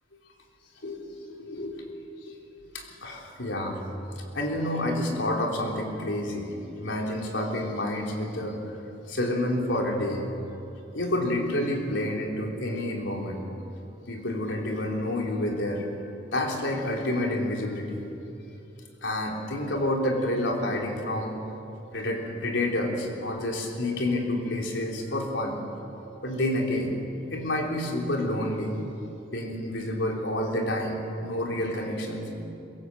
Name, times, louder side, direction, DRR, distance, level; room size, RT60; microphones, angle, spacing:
voice 1, 1.4-1.8 2.3-2.4 2.7-3.8 4.3-6.5 6.8-8.6 9.1-10.3 10.9-13.4 14.1-15.8 16.3-18.0 19.0-21.4 21.9-25.6 26.2-27.0 27.3-28.7 29.3-32.5, left 1 dB, 90° left, 0 dB, 3.7 m, -29 dB
22.0 x 17.0 x 7.9 m, 2.8 s
head